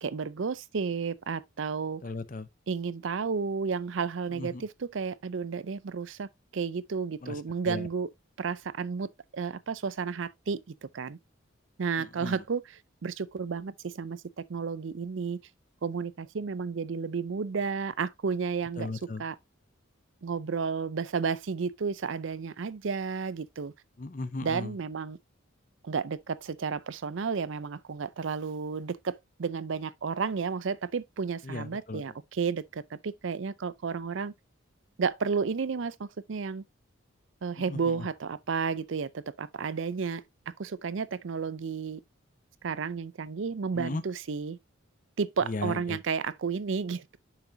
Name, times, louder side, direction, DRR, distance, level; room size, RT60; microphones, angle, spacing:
voice 1, 0.0-2.0 2.7-6.3 6.5-8.1 8.4-10.6 10.9-11.2 11.8-12.6 13.0-14.2 14.5-15.4 15.8-18.9 19.2-19.3 20.2-23.7 24.4-25.2 25.8-34.3 35.0-36.6 37.4-40.2 40.6-42.0 42.6-44.6 45.2-47.2, right 5 dB, 65° right, 0.5 m, -32 dB
voice 2, 2.0-2.5 4.3-4.7 7.2-7.9 12.0-12.4 18.8-19.2 24.0-24.8 31.4-32.1 37.6-38.1 43.7-44.0 45.4-46.0, left 3 dB, 40° left, 0.6 m, -37 dB
6.8 x 6.1 x 2.6 m
head